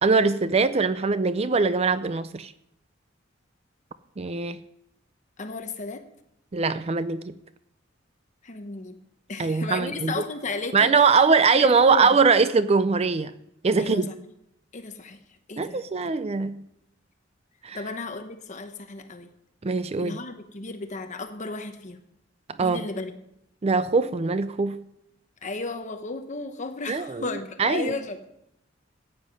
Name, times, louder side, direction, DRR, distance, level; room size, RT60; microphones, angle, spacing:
voice 1, 0.0-2.5 4.2-4.6 6.5-7.3 9.4-10.1 10.7-13.3 13.6-14.1 15.6-16.6 17.6-17.8 19.6-20.1 22.6-22.8 23.6-24.8 26.9-27.2 27.6-27.9, right 4 dB, 35° right, 13 dB, 0.5 m, -22 dB
voice 2, 5.4-6.0 8.4-9.0 9.3-11.1 11.5-12.2 13.8-14.1 14.7-15.2 15.5-16.1 17.7-19.3 20.0-22.0 22.6-23.1 25.4-28.3, left 3 dB, 40° left, 7 dB, 1.0 m, -34 dB
14.5 x 9.4 x 5.4 m, 0.79 s
head